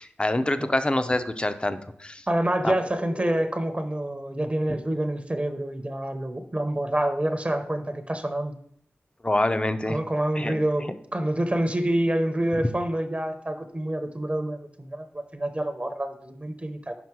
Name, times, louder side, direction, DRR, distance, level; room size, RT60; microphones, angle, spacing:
voice 1, 0.0-2.3 2.6-3.4 9.2-10.0 10.3-10.6 12.6-12.7, left 1 dB, 25° left, 10 dB, 0.6 m, -26 dB
voice 2, 2.3-8.5 9.9-16.9, right 1 dB, 30° right, 8 dB, 0.7 m, -27 dB
5.9 x 5.1 x 4.7 m, 0.66 s
cardioid pair, 40°, 4 cm